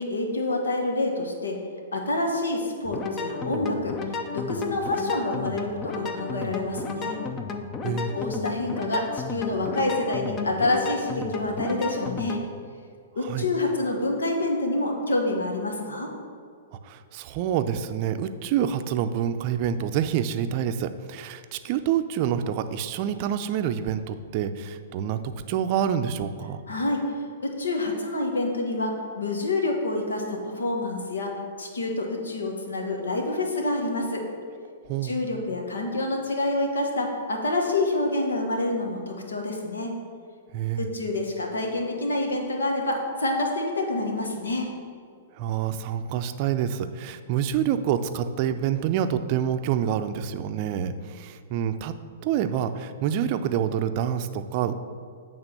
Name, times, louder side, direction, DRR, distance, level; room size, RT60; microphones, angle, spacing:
voice 1, 0.0-1.6 1.9-3.9 4.3-7.2 8.1-12.4 13.1-16.1 26.7-27.0 27.4-31.3 31.6-34.2 35.0-39.9 40.8-44.7, left 2 dB, 90° left, 1 dB, 1.4 m, -27 dB
sound 1, 2.8-12.4, left 4 dB, 25° left, 0.6 m, -33 dB
voice 2, 16.8-26.6 34.9-35.1 40.5-40.9 45.4-51.9 52.2-54.7, right 9 dB, 45° right, 9 dB, 0.5 m, -27 dB
8.1 x 3.6 x 6.6 m, 2.2 s
hypercardioid pair, 125°, 0 cm